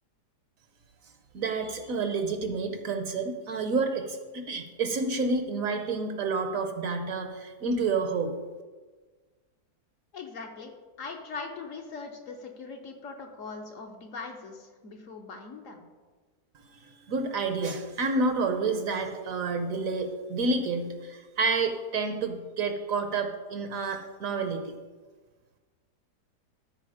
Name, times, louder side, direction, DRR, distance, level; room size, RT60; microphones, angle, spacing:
voice 1, 1.3-8.3 16.8-24.6, right 3 dB, 60° right, 7 dB, 1.1 m, -29 dB
voice 2, 10.1-10.7 11.0-15.8, left 4 dB, 60° left, 3 dB, 1.0 m, -41 dB
13.0 x 4.5 x 4.9 m, 1.4 s
omnidirectional pair, 1.8 m